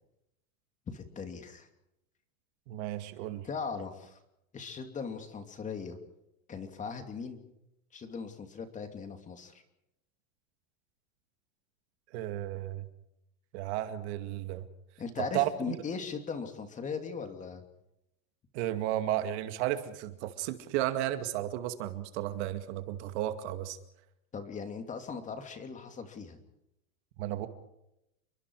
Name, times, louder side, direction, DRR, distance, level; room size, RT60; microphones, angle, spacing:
voice 1, 0.9-1.7 3.4-4.2 4.5-6.0 6.5-7.4 7.9-9.6 15.0-17.6 24.3-26.4, left 5 dB, 20° left, 6 dB, 2.8 m, -39 dB
voice 2, 2.7-3.5 12.1-12.9 13.5-14.7 15.2-15.8 18.5-23.8 27.2-27.5, right 13 dB, 55° right, 9 dB, 2.3 m, -33 dB
30.0 x 23.0 x 4.8 m, 0.84 s
supercardioid pair, 155°, 41 cm